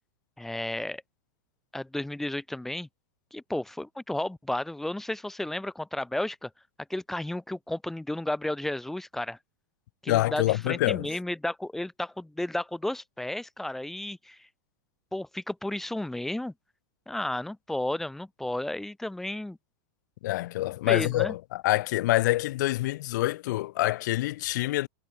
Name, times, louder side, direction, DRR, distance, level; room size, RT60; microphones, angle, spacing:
voice 1, 0.4-1.0 1.7-2.9 3.3-6.5 6.9-9.4 10.0-14.5 15.1-16.5 17.1-19.6 20.9-21.3, left 1 dB, 5° left, 1.0 m, -33 dB
voice 2, 10.1-11.1 20.2-24.9, left 17 dB, 60° left, 0.6 m, -26 dB
supercardioid pair, 160°, 11 cm